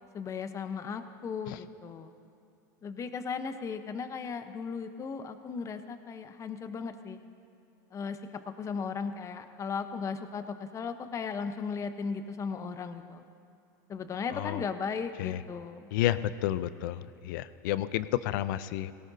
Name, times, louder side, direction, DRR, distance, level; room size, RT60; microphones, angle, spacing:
voice 1, 0.1-2.1 2.8-7.2 7.9-8.2 8.6-13.2 13.9-15.9, left 5 dB, 30° left, 9 dB, 0.9 m, -36 dB
voice 2, 14.3-14.6 15.2-15.4 15.9-18.9, left 13 dB, 70° left, 15 dB, 0.6 m, -31 dB
18.0 x 17.5 x 2.8 m, 2.7 s
supercardioid pair, 110°, 11 cm